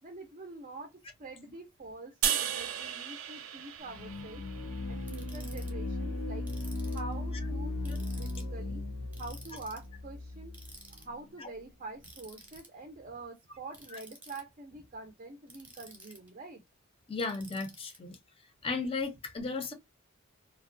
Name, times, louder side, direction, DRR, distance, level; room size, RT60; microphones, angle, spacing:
voice 1, 0.0-6.5 6.8-8.8 9.2-10.5 10.9-16.6, right 2 dB, 40° right, 0.5 m, -46 dB
sound 1, 2.2-5.5, right 9 dB, 90° right, 0.5 m, -35 dB
sound 2, 3.9-11.0, left 2 dB, 90° left, 0.5 m, -37 dB
Ratchet pawl, 5.1-5.7 6.5-7.1 7.9-8.5 9.1-9.8 10.5-11.0 12.0-12.7 13.7-14.4 15.5-16.3 17.2-18.0, right 2 dB, 10° right, 0.7 m, -52 dB
voice 2, 17.1-18.2 18.6-19.7, left 3 dB, 25° left, 0.5 m, -35 dB
2.5 x 2.1 x 2.4 m
head